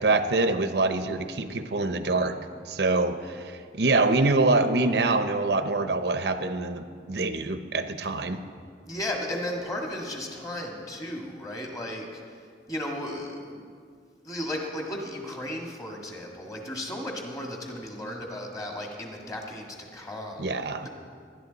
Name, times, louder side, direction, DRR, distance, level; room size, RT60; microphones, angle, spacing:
voice 1, 0.0-2.4 2.7-8.4 20.4-20.9, right 3 dB, 65° right, 9 dB, 0.7 m, -25 dB
voice 2, 8.9-13.6 14.2-20.5 20.8-20.9, left 1 dB, 20° left, 0 dB, 1.8 m, -35 dB
19.0 x 11.5 x 4.0 m, 2.2 s
head